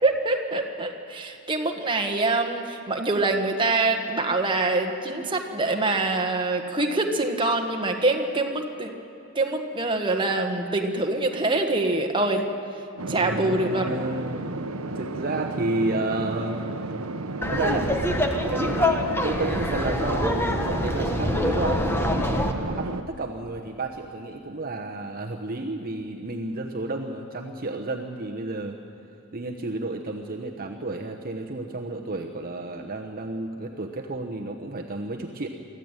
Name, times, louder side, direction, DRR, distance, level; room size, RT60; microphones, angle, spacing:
voice 1, 0.0-8.9 9.3-12.5 13.1-13.8, right 2 dB, 25° right, 3 dB, 1.7 m, -25 dB
sound 1, 13.0-23.0, right 2 dB, 70° right, 1.0 m, -33 dB
voice 2, 13.1-14.7 14.9-16.6 17.5-17.9 18.5-28.8 29.3-35.5, right 2 dB, 40° right, 2 dB, 1.1 m, -31 dB
Laughter, 17.4-22.5, left 1 dB, 10° left, 1.3 m, -25 dB
25.0 x 14.0 x 9.1 m, 2.7 s
head